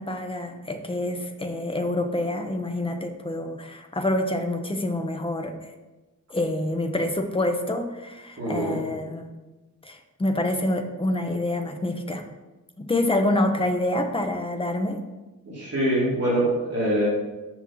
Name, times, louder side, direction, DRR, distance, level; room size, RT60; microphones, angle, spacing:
voice 1, 0.0-5.7 6.3-9.3 9.8-12.2 12.8-15.0, left 1 dB, 15° left, 5 dB, 0.7 m, -27 dB
voice 2, 8.4-8.8 15.5-17.1, right 1 dB, 45° right, -7 dB, 2.7 m, -24 dB
6.2 x 6.0 x 5.6 m, 1.1 s
wide cardioid pair, 175°, 35 cm